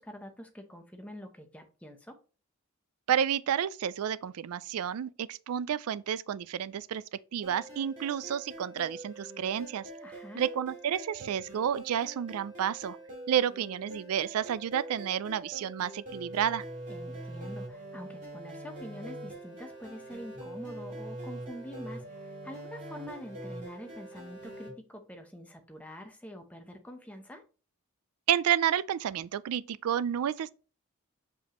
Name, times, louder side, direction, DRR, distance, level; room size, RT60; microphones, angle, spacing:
voice 1, 0.0-2.2 10.0-10.4 16.9-27.4, equal, 5° left, 0.8 m, -46 dB
voice 2, 3.1-7.0 7.3-9.9 10.3-13.0 13.3-16.6 28.3-30.5, right 9 dB, 85° right, 0.3 m, -30 dB
sound 1, 7.4-24.7, right 1 dB, 35° right, 2.4 m, -44 dB
6.8 x 5.1 x 3.0 m
head